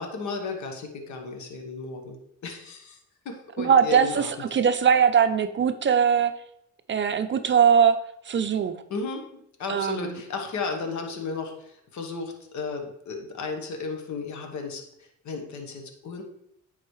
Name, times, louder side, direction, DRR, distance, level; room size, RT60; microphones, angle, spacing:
voice 1, 0.0-2.2 2.4-3.0 3.2-4.3 8.9-9.2 9.6-16.2, left 4 dB, 70° left, 4 dB, 1.2 m, -34 dB
voice 2, 3.6-6.3 6.9-8.0 8.3-8.7 9.7-10.2, right 7 dB, 40° right, 9 dB, 0.5 m, -21 dB
9.8 x 3.9 x 3.2 m, 0.76 s
cardioid pair, 90°, 30 cm